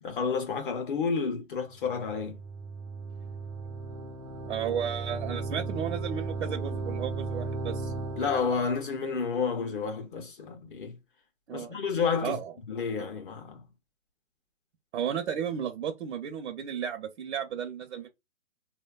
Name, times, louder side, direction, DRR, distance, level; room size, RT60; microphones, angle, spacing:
voice 1, 0.0-2.4 8.2-11.0 11.5-12.4 12.7-13.6, left 5 dB, 40° left, 0.6 m, -30 dB
sound 1, 1.8-8.6, right 3 dB, 20° right, 0.4 m, -36 dB
voice 2, 4.4-7.9 11.5-11.7 12.2-12.5 14.9-18.1, right 8 dB, 60° right, 0.6 m, -33 dB
3.0 x 2.2 x 2.3 m
hypercardioid pair, 145°, 39 cm